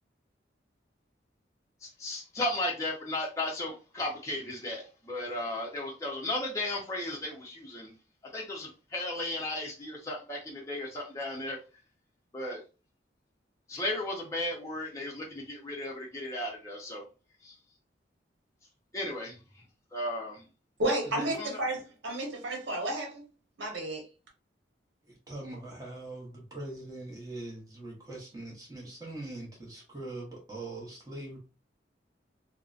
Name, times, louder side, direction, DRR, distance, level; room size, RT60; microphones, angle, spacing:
voice 1, 1.8-7.9 8.3-11.6 12.3-12.6 13.7-17.0 17.4-17.5 18.9-19.6 19.9-20.4 21.3-21.6, left 1 dB, 15° left, 0.5 m, -35 dB
voice 2, 20.8-23.2 23.6-24.0, right 1 dB, 85° right, 0.9 m, -32 dB
voice 3, 25.1-31.4, right 2 dB, 20° right, 0.7 m, -42 dB
2.6 x 2.0 x 2.3 m
head